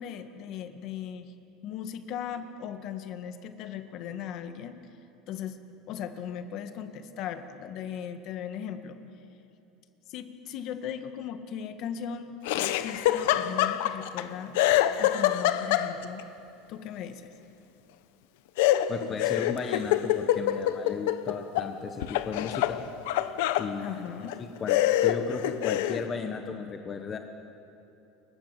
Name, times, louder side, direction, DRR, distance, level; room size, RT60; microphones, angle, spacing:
voice 1, 0.0-1.3 1.6-4.7 5.3-5.6 5.9-9.0 10.1-14.6 15.0-16.3 16.7-17.3 23.8-24.4, left 8 dB, 45° left, 8 dB, 1.8 m, -38 dB
Laughter, 12.4-14.2 14.5-16.2 18.6-21.7 22.0-23.7 24.3-24.4 24.7-26.0, left 13 dB, 80° left, 1.3 m, -25 dB
voice 2, 18.9-22.8 23.6-24.0 24.4-27.2, left 5 dB, 20° left, 4 dB, 1.2 m, -35 dB
29.5 x 24.5 x 7.7 m, 2.9 s
cardioid pair, 160°, 0 cm